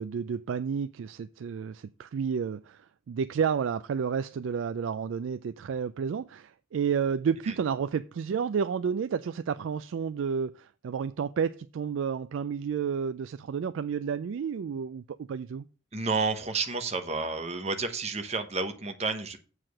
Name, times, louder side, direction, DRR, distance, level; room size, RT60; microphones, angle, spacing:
voice 1, 0.0-15.7, right 6 dB, 75° right, 0.3 m, -31 dB
voice 2, 15.9-19.4, right 4 dB, 35° right, 1.0 m, -30 dB
7.5 x 4.8 x 6.3 m
head